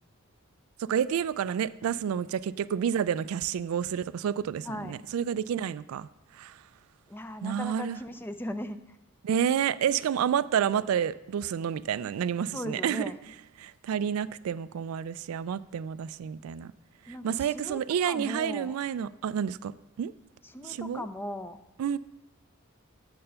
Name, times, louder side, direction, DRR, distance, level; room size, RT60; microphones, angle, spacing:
voice 1, 0.8-6.6 7.4-8.0 9.2-13.1 13.6-16.7 17.0-19.7 20.0-20.1 20.6-21.1 21.8-22.0, right 8 dB, 75° right, 0.3 m, -29 dB
voice 2, 4.6-5.0 7.1-9.0 12.5-13.2 17.1-18.7 20.5-21.6, left 1 dB, 10° left, 0.4 m, -38 dB
8.8 x 6.7 x 5.6 m
head